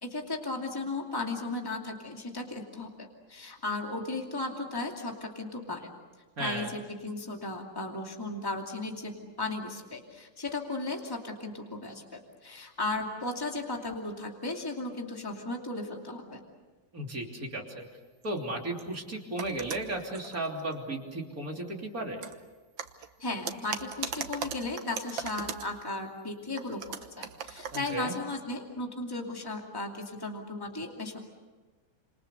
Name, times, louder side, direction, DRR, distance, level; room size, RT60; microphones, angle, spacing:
voice 1, 0.0-5.9 6.4-16.4 23.2-31.2, left 2 dB, 10° left, 1 dB, 2.6 m, -36 dB
voice 2, 6.4-6.7 16.9-17.8 18.2-22.2 27.7-28.2, right 2 dB, 50° right, 1 dB, 3.6 m, -35 dB
sound 1, 18.2-18.4 18.8-19.0 19.4-20.7 22.2-22.4 22.8-25.8 26.6-28.0, right 7 dB, 85° right, 1.9 m, -39 dB
28.5 x 27.5 x 6.8 m, 1.3 s
omnidirectional pair, 2.0 m